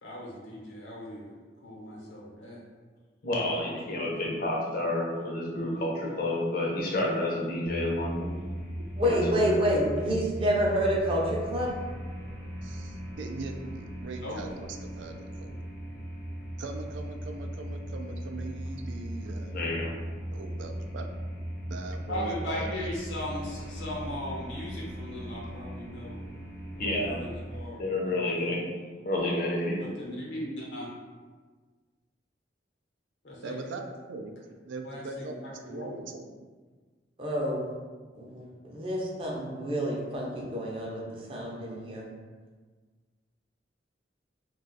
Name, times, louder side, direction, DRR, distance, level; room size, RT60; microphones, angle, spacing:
voice 1, 0.0-2.6 3.7-4.1 14.2-14.4 22.1-26.2 26.8-28.5 29.7-30.9 33.2-33.6 34.8-36.0, left 1 dB, 85° left, -4 dB, 0.9 m, -38 dB
voice 2, 3.2-8.4 9.0-9.6 19.5-19.9 26.8-27.1 27.8-28.7 29.0-29.8, left 1 dB, 55° left, -3 dB, 0.6 m, -29 dB
sound 1, 7.6-27.6, equal, 15° left, 0.5 m, -38 dB
voice 3, 9.0-11.8 37.2-37.7 38.1-42.0, equal, 30° right, -3 dB, 0.5 m, -28 dB
voice 4, 12.6-15.6 16.6-19.7 20.3-21.1 21.7-22.9 33.4-34.3 34.6-36.3, right 3 dB, 80° right, 5 dB, 0.3 m, -40 dB
2.4 x 2.3 x 3.8 m, 1.4 s
head